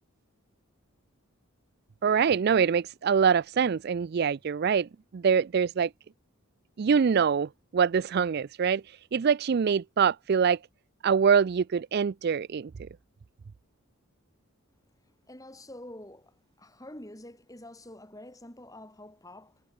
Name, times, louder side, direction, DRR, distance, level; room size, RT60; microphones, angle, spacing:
voice 1, 2.0-5.9 6.8-10.6 11.0-12.7, right 6 dB, 50° right, 0.4 m, -24 dB
voice 2, 15.3-19.6, left 1 dB, 15° left, 5.6 m, -47 dB
head